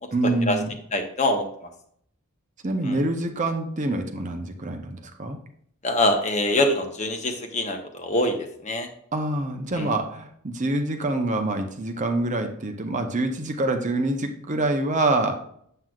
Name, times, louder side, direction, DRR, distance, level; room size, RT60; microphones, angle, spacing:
voice 1, 0.1-0.8 2.6-5.4 9.1-15.4, right 2 dB, 35° right, 5 dB, 0.8 m, -26 dB
voice 2, 0.9-1.4 2.8-3.0 5.8-8.9 9.7-9.9, left 1 dB, 35° left, 5 dB, 1.0 m, -24 dB
7.7 x 7.5 x 2.4 m, 0.66 s
head